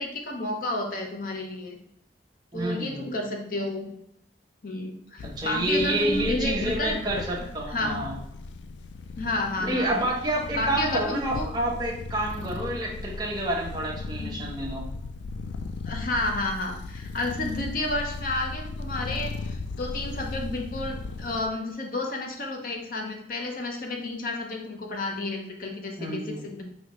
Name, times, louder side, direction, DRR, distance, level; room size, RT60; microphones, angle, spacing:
voice 1, 0.0-1.8 2.5-3.9 4.6-7.0 7.7-8.0 9.2-10.0 10.5-11.5 14.2-14.4 15.8-26.6, left 2 dB, 50° left, 2 dB, 0.7 m, -31 dB
voice 2, 2.5-3.1 5.2-8.2 9.6-14.8 26.0-26.4, right 1 dB, 20° right, -3 dB, 0.8 m, -28 dB
sound 1, 5.2-21.5, left 3 dB, 80° left, 0.3 m, -37 dB
4.9 x 2.8 x 3.0 m, 0.75 s
head